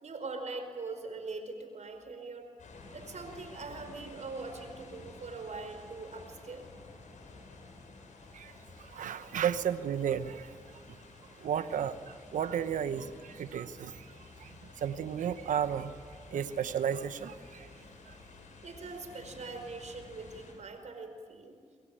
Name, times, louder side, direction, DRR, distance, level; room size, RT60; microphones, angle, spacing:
voice 1, 0.0-2.5 2.9-6.7 18.6-21.5, right 3 dB, 65° right, 7 dB, 4.9 m, -42 dB
sound 1, 2.6-20.5, left 3 dB, 75° left, 6.7 m, -52 dB
voice 2, 8.8-10.5 11.4-14.0 14.4-15.9 16.3-17.7 18.1-18.2, right 8 dB, 85° right, 12 dB, 1.1 m, -33 dB
25.5 x 22.5 x 9.0 m, 2.1 s
supercardioid pair, 45°, 13 cm